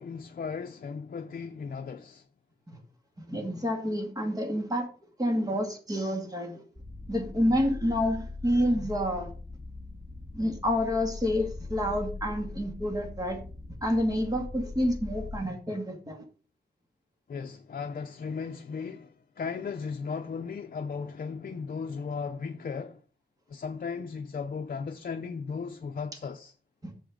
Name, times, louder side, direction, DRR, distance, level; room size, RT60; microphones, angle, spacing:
voice 1, 0.0-2.3 17.3-23.0 23.5-26.5, left 5 dB, 55° left, 0.7 m, -36 dB
voice 2, 3.2-4.9 5.2-6.6 7.1-9.3 10.3-13.4 13.8-16.2 26.8-26.9, equal, 20° right, 2.3 m, -28 dB
sound 1, 6.7-15.4, left 3 dB, ahead, 1.8 m, -41 dB
10.0 x 7.2 x 3.8 m
wide cardioid pair, 140°, 18 cm